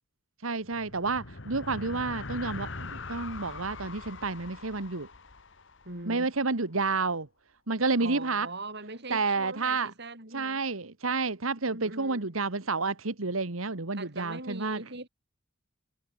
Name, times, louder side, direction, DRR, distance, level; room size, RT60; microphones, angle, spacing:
voice 1, 0.4-5.1 6.1-7.3 7.7-8.5 9.1-9.9 10.3-14.8, right 3 dB, 85° right, 1.8 m, -30 dB
sound 1, 0.6-6.3, left 3 dB, 65° left, 2.0 m, -42 dB
voice 2, 5.8-6.3 8.0-10.6 11.7-12.3 13.9-15.1, right 2 dB, 55° right, 6.5 m, -41 dB
head